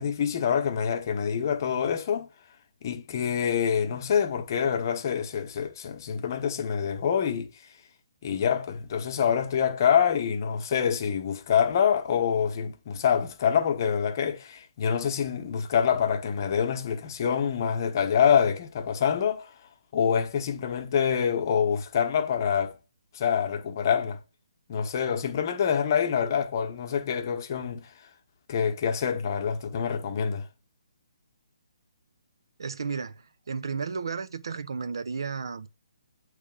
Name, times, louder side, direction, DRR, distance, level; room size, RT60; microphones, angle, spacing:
voice 1, 0.0-2.3 2.8-7.5 8.2-19.5 19.9-22.8 23.1-24.2 24.7-27.9 28.5-30.5, left 7 dB, 40° left, 0.9 m, -26 dB
voice 2, 32.6-35.7, right 5 dB, 60° right, 0.5 m, -33 dB
8.2 x 3.2 x 3.8 m
figure-of-eight pair, 140°, 3 cm